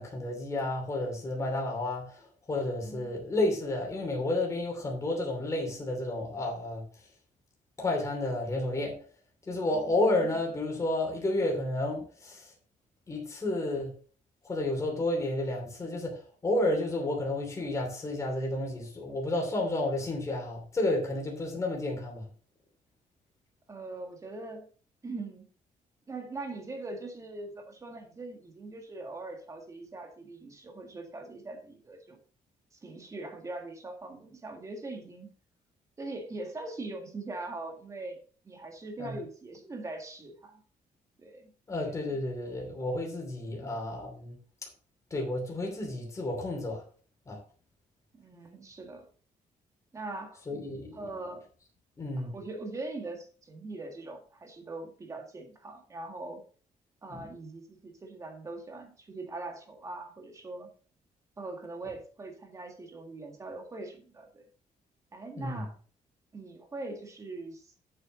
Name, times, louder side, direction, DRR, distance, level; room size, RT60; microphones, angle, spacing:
voice 1, 0.0-6.8 7.8-9.0 9.5-12.5 13.1-13.9 14.4-22.2 39.0-39.2 41.7-44.4 45.1-46.8 47.3-47.4 50.5-51.1 52.0-52.4 57.1-57.3 65.4-65.7, left 2 dB, 20° left, 2.9 m, -31 dB
voice 2, 2.8-3.1 9.7-9.9 23.7-24.7 25.0-25.4 26.1-32.2 32.7-35.3 36.0-38.2 38.4-40.6 41.2-41.5 43.5-43.7 48.2-49.1 49.9-50.4 50.9-51.4 52.2-56.4 57.0-60.7 61.4-64.5 65.1-65.8 66.3-67.8, right 2 dB, 20° right, 1.8 m, -41 dB
8.1 x 7.9 x 3.9 m
cardioid pair, 170°, 14 cm